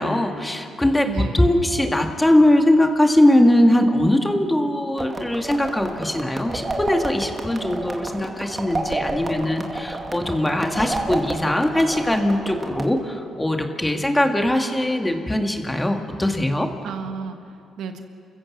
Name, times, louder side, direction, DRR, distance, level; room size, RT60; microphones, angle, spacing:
voice 1, 0.0-1.1 1.3-16.7, left 1 dB, 10° left, 4 dB, 2.1 m, -20 dB
voice 2, 1.0-1.5 16.8-18.0, right 5 dB, 80° right, 6 dB, 1.6 m, -33 dB
sound 1, 5.0-12.9, right 2 dB, 25° right, 2.4 m, -30 dB
29.0 x 15.5 x 7.5 m, 2.5 s
cardioid pair, 90°, 0 cm